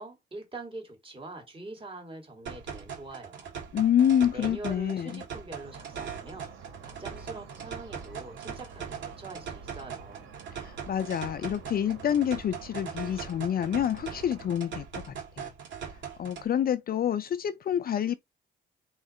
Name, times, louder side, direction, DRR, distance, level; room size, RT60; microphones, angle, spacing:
voice 1, 0.0-3.6 4.3-6.5 6.8-10.3, right 2 dB, 25° right, 2.5 m, -44 dB
sound 1, 2.5-16.5, right 7 dB, 70° right, 2.1 m, -41 dB
voice 2, 3.7-5.2 10.6-15.5 16.2-18.1, left 9 dB, 50° left, 0.5 m, -27 dB
sound 2, 5.6-14.6, right 5 dB, 90° right, 2.0 m, -49 dB
3.7 x 3.2 x 4.3 m
cardioid pair, 90°, 20 cm